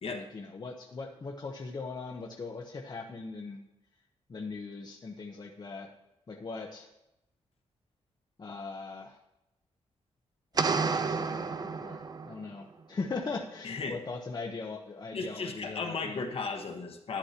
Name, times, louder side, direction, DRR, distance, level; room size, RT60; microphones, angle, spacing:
voice 1, 0.1-3.6 4.3-5.9 6.3-6.9 8.4-9.2 10.5-16.2, left 4 dB, 40° left, 0 dB, 0.9 m, -40 dB
sound 1, 10.6-12.5, right 4 dB, 35° right, 0.5 m, -30 dB
voice 2, 13.6-14.0 15.1-17.2, left 4 dB, 55° left, 3 dB, 1.2 m, -35 dB
11.5 x 10.0 x 2.9 m, 0.90 s
wide cardioid pair, 110°, 12 cm